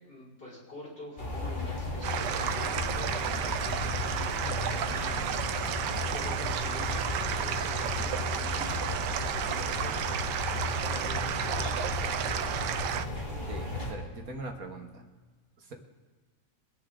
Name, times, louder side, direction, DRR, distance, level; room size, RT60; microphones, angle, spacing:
voice 1, 0.0-5.3 6.1-10.1 11.0-12.4, left 1 dB, 80° left, -7 dB, 5.8 m, -46 dB
sound 1, 1.2-13.9, left 2 dB, 25° left, 3.0 m, -35 dB
sound 2, 2.0-13.0, right 9 dB, 75° right, 1.3 m, -32 dB
voice 2, 13.5-15.1 15.6-15.7, right 2 dB, 55° right, 3 dB, 1.7 m, -41 dB
24.0 x 10.5 x 3.8 m, 1.4 s
omnidirectional pair, 1.9 m